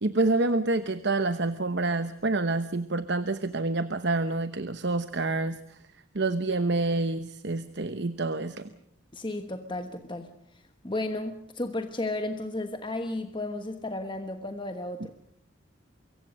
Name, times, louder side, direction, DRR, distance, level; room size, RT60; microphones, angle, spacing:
voice 1, 0.0-5.8 6.1-8.7, right 2 dB, 55° right, 11 dB, 1.0 m, -27 dB
voice 2, 9.1-10.3 10.8-15.1, left 2 dB, 25° left, 7 dB, 1.2 m, -33 dB
25.0 x 23.0 x 6.4 m, 0.73 s
head